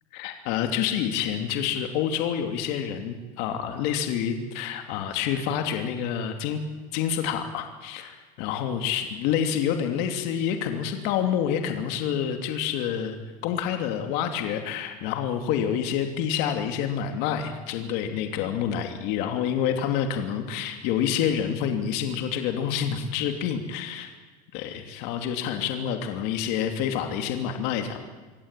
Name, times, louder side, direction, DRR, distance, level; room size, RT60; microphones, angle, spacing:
voice 1, 0.1-6.6 6.9-24.1 24.5-28.0, left 8 dB, 60° left, 5 dB, 2.8 m, -28 dB
25.5 x 17.0 x 9.1 m, 1.3 s
cardioid pair, 160°, 19 cm